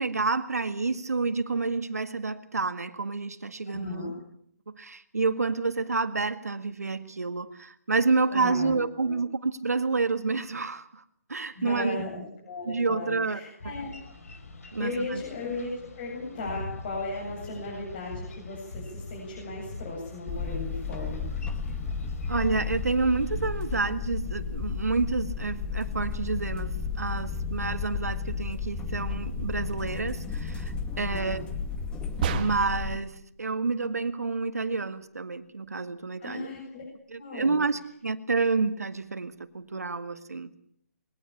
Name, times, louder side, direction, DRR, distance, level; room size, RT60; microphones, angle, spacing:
voice 1, 0.0-4.1 4.7-11.0 11.3-12.0 12.7-13.7 14.7-15.2 22.3-31.4 32.3-36.5 37.1-40.6, right 4 dB, 85° right, 1.9 m, -29 dB
voice 2, 3.7-4.1 8.3-9.2 11.5-13.9 14.8-21.2 30.9-31.4 36.2-36.8 37.2-37.6, left 2 dB, 40° left, 7.9 m, -36 dB
Boat Water vehicle, 13.6-23.8, left 2 dB, 65° left, 5.9 m, -43 dB
sound 1, 20.3-33.0, left 5 dB, 10° left, 2.0 m, -33 dB
sound 2, 32.2-32.9, right 6 dB, 35° right, 2.0 m, -29 dB
22.0 x 18.0 x 8.7 m
figure-of-eight pair, 150°, 8 cm